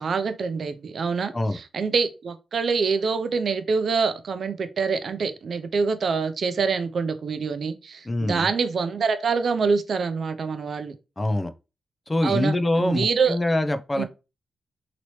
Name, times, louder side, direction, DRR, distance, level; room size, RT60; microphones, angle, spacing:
voice 1, 0.0-10.9 12.2-13.4 14.0-14.1, right 5 dB, 60° right, 0.5 m, -25 dB
voice 2, 8.1-8.5 11.2-11.5 12.1-14.0, left 1 dB, 20° left, 0.4 m, -24 dB
3.0 x 2.8 x 3.0 m
cardioid pair, 75°, 0 cm